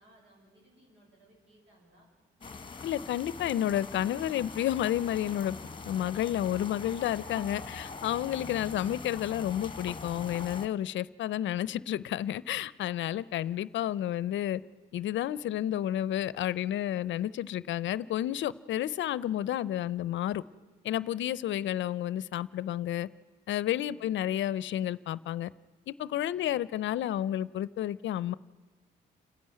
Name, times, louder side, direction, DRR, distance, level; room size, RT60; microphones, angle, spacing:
voice 1, 0.0-2.1 8.4-9.0 23.7-24.3 26.3-26.6, right 1 dB, 75° right, -1 dB, 6.6 m, -62 dB
sound 1, 2.4-10.7, left 4 dB, 25° left, 1.5 m, -43 dB
voice 2, 2.8-5.6 5.9-14.6 14.9-20.4 20.8-23.1 23.5-25.5 25.9-28.3, left 12 dB, 70° left, 20 dB, 0.6 m, -31 dB
29.0 x 10.5 x 9.3 m, 1.2 s
cardioid pair, 90°, 20 cm